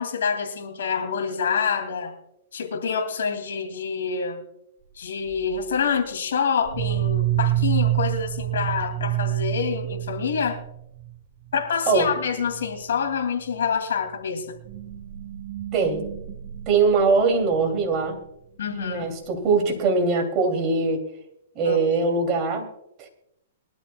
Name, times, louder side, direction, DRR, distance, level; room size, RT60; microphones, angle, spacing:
voice 1, 0.0-2.1 2.5-4.4 5.0-10.6 11.5-14.6 18.6-19.1 21.6-21.8, left 6 dB, 80° left, 5 dB, 2.5 m, -26 dB
sound 1, 5.3-5.7 6.6-11.1 11.5-11.6 11.9-12.2 12.5-12.8 13.4-13.6 14.5-17.7, right 14 dB, 45° right, 1.2 m, -28 dB
voice 2, 15.7-16.0 16.7-18.2 18.9-21.0 21.5-22.6 23.0-23.1, right 4 dB, 30° right, 2 dB, 2.8 m, -21 dB
22.5 x 12.5 x 2.3 m, 0.81 s
hypercardioid pair, 155°, 0 cm